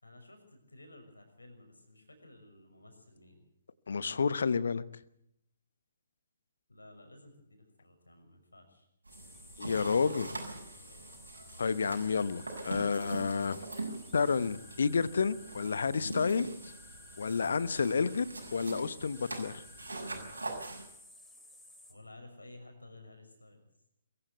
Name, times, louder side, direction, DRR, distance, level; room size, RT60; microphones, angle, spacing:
voice 1, 0.0-3.4 6.7-8.9 9.7-11.1 21.9-23.7, left 2 dB, 75° left, 6 dB, 6.3 m, -54 dB
voice 2, 3.9-4.8 9.6-10.3 11.6-13.6 14.1-16.5 17.2-19.6, left 5 dB, 60° left, 17 dB, 1.0 m, -30 dB
sound 1, 9.0-20.8, right 2 dB, 75° right, 6.6 m, -43 dB
sound 2, 9.1-21.9, left 1 dB, 5° left, 3.0 m, -55 dB
sound 3, 11.6-13.2 14.1-15.7 16.6-18.2 19.1-20.7, left 5 dB, 35° left, 4.8 m, -61 dB
23.5 x 15.0 x 8.1 m, 0.76 s
figure-of-eight pair, 130°, 0 cm